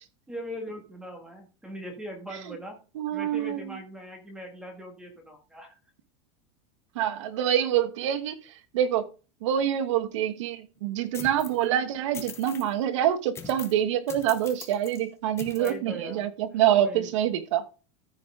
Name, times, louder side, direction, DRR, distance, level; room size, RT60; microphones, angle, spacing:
voice 1, 0.3-2.8 3.1-5.8 15.6-16.3 16.7-17.1, equal, 5° right, 1.9 m, -40 dB
voice 2, 2.9-3.6 6.9-8.4 8.7-9.0 9.4-17.6, right 10 dB, 80° right, 1.4 m, -26 dB
sound 1, 11.1-11.6 12.1-12.7 13.3-13.8 14.1-15.0 15.4-15.7, left 6 dB, 15° left, 0.9 m, -42 dB
14.0 x 5.0 x 3.7 m
supercardioid pair, 170°, 16 cm